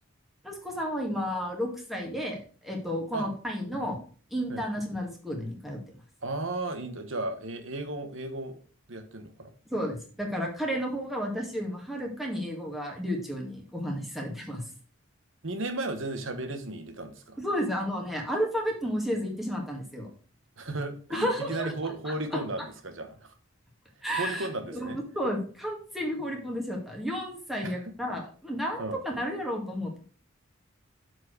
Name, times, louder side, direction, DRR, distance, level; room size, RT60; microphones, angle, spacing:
voice 1, 0.4-4.0 4.3-5.8 9.7-14.6 17.4-20.1 21.1-22.4 24.0-24.5 24.7-30.0, equal, ahead, -1 dB, 1.9 m, -32 dB
voice 2, 6.2-8.6 8.9-9.5 15.4-17.4 20.6-23.3 24.2-25.0 27.6-27.9 28.8-29.0, right 2 dB, 65° right, 8 dB, 1.3 m, -34 dB
7.2 x 4.7 x 6.3 m, 0.42 s
head